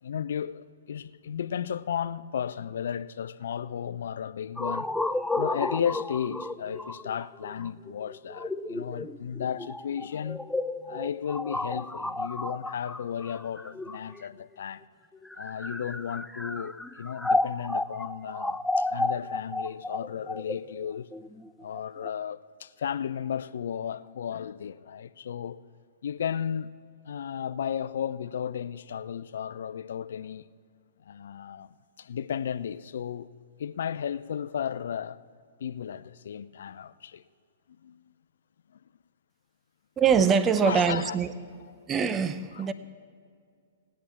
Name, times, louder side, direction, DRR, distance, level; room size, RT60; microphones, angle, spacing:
voice 1, 0.0-4.9 5.4-10.4 10.9-14.8 15.4-21.1 21.6-25.6 26.0-26.8 27.1-30.5 31.1-33.3 33.6-35.2 35.6-37.2 37.8-38.0 40.6-41.1 42.5-42.7, left 8 dB, 70° left, 0.5 m, -34 dB
sound 1, 4.6-14.4 15.2-22.1, left 2 dB, 5° left, 0.4 m, -32 dB
voice 2, 40.0-41.3 41.9-42.7, right 6 dB, 20° right, 0.7 m, -23 dB
17.0 x 10.0 x 7.3 m
hypercardioid pair, 125°, 0 cm